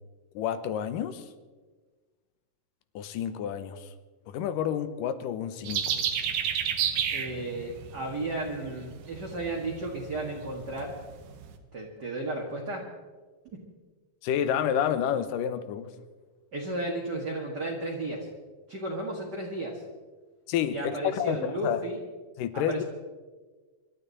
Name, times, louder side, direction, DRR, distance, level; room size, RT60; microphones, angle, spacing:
voice 1, 0.4-1.3 3.0-3.9 4.3-6.0 14.2-15.9 20.5-21.8 22.4-22.8, left 9 dB, 85° left, 12 dB, 2.5 m, -29 dB
sound 1, 5.7-11.6, right 8 dB, 85° right, 2.8 m, -32 dB
voice 2, 7.1-11.0 11.7-12.9 13.5-13.6 16.5-18.3 18.7-19.8 20.7-22.0 22.5-22.8, right 2 dB, 40° right, -2 dB, 1.9 m, -34 dB
25.5 x 12.0 x 4.1 m, 1.4 s
omnidirectional pair, 3.9 m